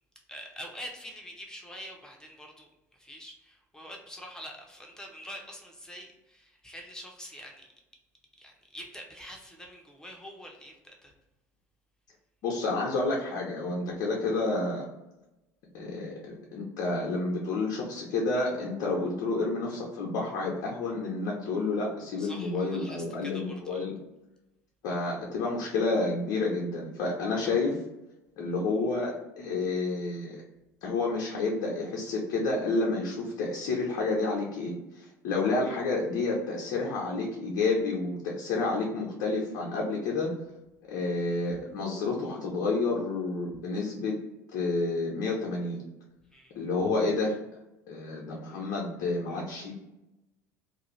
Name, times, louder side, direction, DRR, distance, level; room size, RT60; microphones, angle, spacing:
voice 1, 0.3-7.7 8.4-11.1 22.2-23.9 46.3-46.5, equal, 5° left, 1 dB, 0.8 m, -45 dB
voice 2, 12.4-14.9 15.7-24.0 24.8-27.8 28.4-30.4 30.8-40.3 40.9-44.1 44.5-45.8 46.5-47.4 47.9-49.7, left 3 dB, 60° left, -3 dB, 0.7 m, -30 dB
2.5 x 2.3 x 3.1 m, 0.95 s
hypercardioid pair, 65°, 9 cm